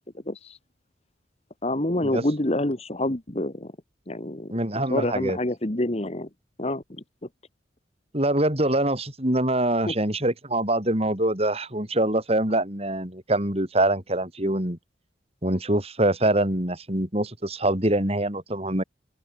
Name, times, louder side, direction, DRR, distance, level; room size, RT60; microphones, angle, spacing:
voice 1, 0.3-0.6 1.6-3.7 4.1-6.3 6.6-6.8 9.9-10.0, left 1 dB, 35° left, 1.6 m, -27 dB
voice 2, 4.5-5.4 8.1-14.8 15.4-18.8, right 1 dB, 35° right, 4.6 m, -24 dB
open air
head